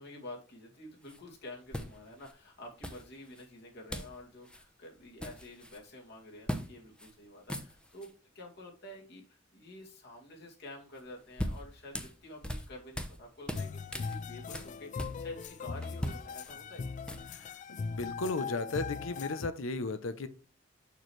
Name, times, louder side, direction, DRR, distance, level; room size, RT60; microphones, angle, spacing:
voice 1, 0.0-16.9, left 1 dB, 55° left, -1 dB, 2.4 m, -49 dB
sound 1, 1.0-1.2 1.7-2.3 2.8-3.4 3.9-4.2 4.4-4.6 5.0-5.8 6.5-6.7 7.0-7.1 7.4-8.1 11.0-13.2 13.5-15.5 15.8-17.5, equal, 5° left, 0.7 m, -40 dB
sound 2, 13.5-19.5, left 5 dB, 40° left, 0.3 m, -40 dB
voice 2, 17.3-20.3, left 3 dB, 90° left, 13 dB, 0.7 m, -35 dB
6.8 x 6.3 x 3.2 m, 0.38 s
head